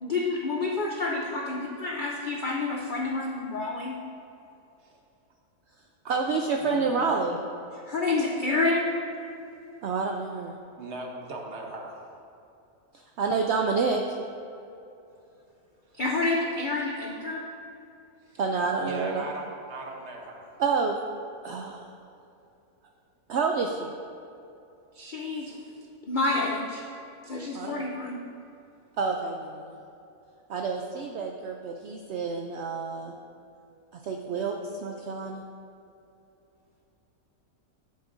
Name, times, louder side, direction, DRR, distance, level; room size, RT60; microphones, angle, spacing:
voice 1, 0.0-3.9 7.9-8.9 15.9-17.4 24.9-25.6 26.1-26.8 27.2-28.2, left 3 dB, 70° left, -1 dB, 0.4 m, -28 dB
voice 2, 6.1-7.4 9.8-10.6 12.9-14.0 18.4-19.2 20.6-21.0 21.4-21.9 23.3-23.9 27.5-27.9 29.0-29.8 30.5-33.1 34.0-35.4, right 4 dB, 80° right, 2 dB, 0.6 m, -28 dB
voice 3, 6.6-7.1 10.8-12.1 18.3-18.4 18.8-20.5, right 2 dB, 50° right, 1 dB, 1.1 m, -39 dB
10.5 x 7.8 x 2.6 m, 2.7 s
omnidirectional pair, 1.7 m